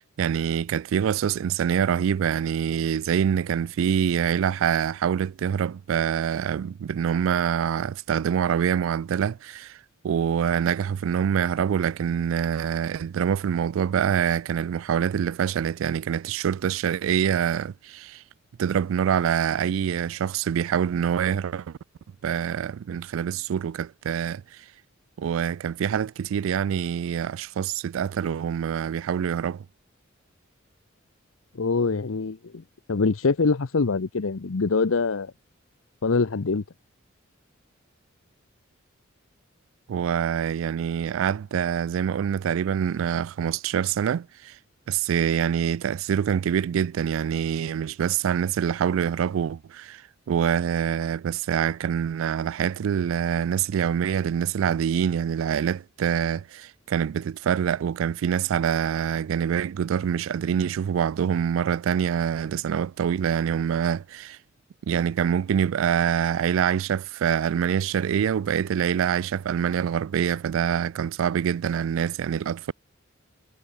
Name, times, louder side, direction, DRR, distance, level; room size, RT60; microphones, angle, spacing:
voice 1, 0.0-9.8 10.0-18.2 18.6-21.8 22.2-24.4 25.2-29.6 39.9-44.6 44.9-50.0 50.3-64.4 64.9-72.7, right 8 dB, 80° right, 0.3 m, -25 dB
voice 2, 31.5-32.6 32.9-35.3 36.0-36.6, left 4 dB, 90° left, 0.7 m, -24 dB
head